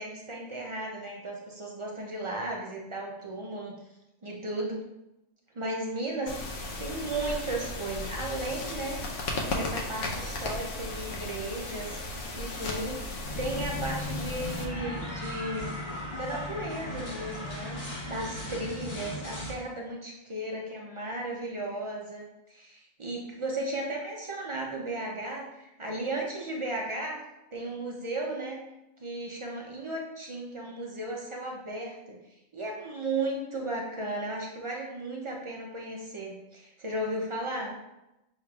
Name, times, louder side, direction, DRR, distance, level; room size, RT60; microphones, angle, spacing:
voice 1, 0.0-3.7 4.2-4.9 5.5-9.0 9.5-12.0 12.4-15.7 16.2-27.2 27.5-28.6 29.0-32.2 32.5-37.7, right 1 dB, 55° right, -1 dB, 0.3 m, -35 dB
sound 1, 6.3-14.6, left 2 dB, 75° left, 1.0 m, -35 dB
sound 2, 13.2-19.5, left 1 dB, 50° left, 1.4 m, -37 dB
6.3 x 3.2 x 2.3 m, 0.92 s
omnidirectional pair, 1.3 m